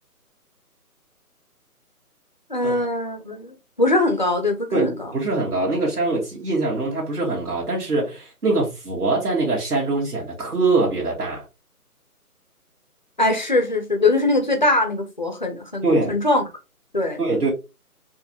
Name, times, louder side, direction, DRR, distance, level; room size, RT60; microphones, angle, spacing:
voice 1, 2.5-5.1 13.2-16.4 16.9-17.2, left 2 dB, 30° left, 0.5 m, -22 dB
voice 2, 4.7-11.4 15.8-16.1 17.2-17.5, right 3 dB, 80° right, 1.9 m, -23 dB
4.7 x 2.6 x 2.9 m
figure-of-eight pair, 155°, 46 cm